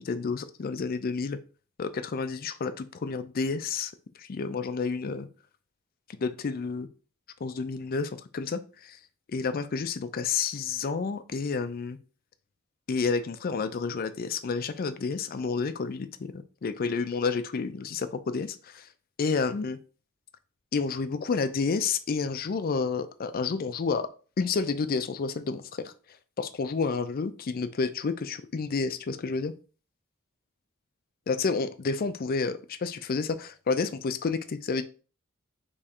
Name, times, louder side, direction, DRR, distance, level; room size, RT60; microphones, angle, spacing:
voice 1, 0.0-1.4 1.8-3.9 4.2-5.3 6.2-6.9 7.4-9.0 9.3-12.0 12.9-18.9 19.2-19.8 20.7-24.1 24.4-25.9 26.4-29.5 31.3-34.8, left 4 dB, 45° left, 12 dB, 0.4 m, -30 dB
3.6 x 3.1 x 4.3 m, 0.37 s
head